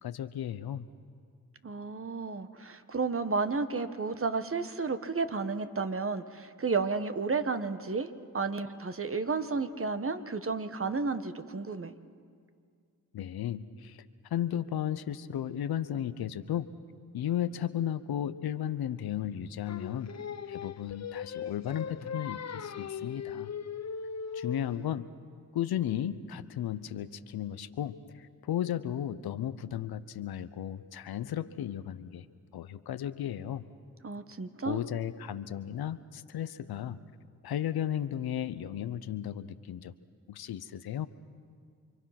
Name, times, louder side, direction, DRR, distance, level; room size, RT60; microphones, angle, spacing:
voice 1, 0.0-0.9 13.1-14.1 14.3-16.7 17.1-20.1 20.5-23.5 24.3-25.1 25.5-32.2 32.5-33.6 34.7-37.0 37.4-39.9 40.3-41.1, left 10 dB, 80° left, 13 dB, 0.8 m, -34 dB
voice 2, 1.6-11.9 34.0-34.8, right 4 dB, 35° right, 10 dB, 1.4 m, -32 dB
Singing, 19.7-24.9, left 7 dB, 45° left, 0.8 m, -39 dB
28.5 x 24.0 x 5.9 m, 2.2 s
cardioid pair, 50°, 37 cm